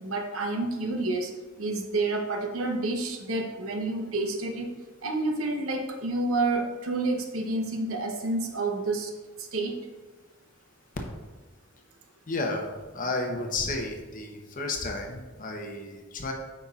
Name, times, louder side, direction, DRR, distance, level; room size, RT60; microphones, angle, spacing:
voice 1, 0.0-1.3 1.6-4.7 5.0-9.1 9.4-9.8, right 2 dB, 75° right, 4 dB, 0.8 m, -29 dB
voice 2, 12.3-12.6 12.9-16.3, left 2 dB, 40° left, 2 dB, 0.8 m, -32 dB
8.3 x 5.4 x 2.4 m, 1.3 s
head